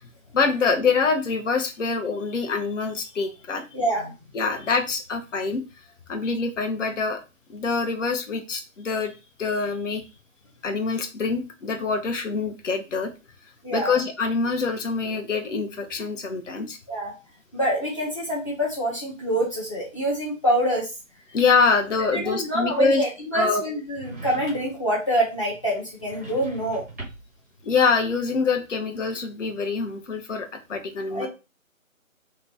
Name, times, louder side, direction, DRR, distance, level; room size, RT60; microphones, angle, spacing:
voice 1, 0.3-3.6 4.3-5.6 6.1-7.2 7.5-9.1 9.4-10.0 10.6-13.1 13.7-16.8 21.3-23.0 23.3-23.6 27.6-31.3, left 4 dB, 60° left, 5 dB, 0.8 m, -25 dB
voice 2, 3.7-4.1 13.6-13.9 16.9-17.1 17.5-20.9 22.1-26.8 31.1-31.3, right 1 dB, 25° left, -4 dB, 0.7 m, -26 dB
sound 1, 23.9-24.9 25.9-27.4, right 3 dB, 15° right, 0.6 m, -40 dB
3.0 x 2.3 x 3.9 m, 0.29 s
figure-of-eight pair, 155°, 41 cm